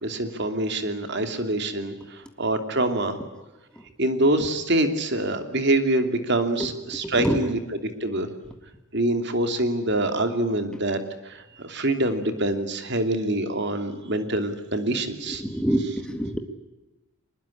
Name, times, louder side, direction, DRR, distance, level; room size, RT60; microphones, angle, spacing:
voice 1, 0.0-3.2 4.0-7.6 8.0-8.3 8.9-11.0 11.2-15.4, right 1 dB, 50° right, 7 dB, 2.8 m, -25 dB
voice 2, 6.6-7.4 15.3-16.4, right 1 dB, 5° left, 5 dB, 1.8 m, -27 dB
24.5 x 21.0 x 9.9 m, 1.0 s
head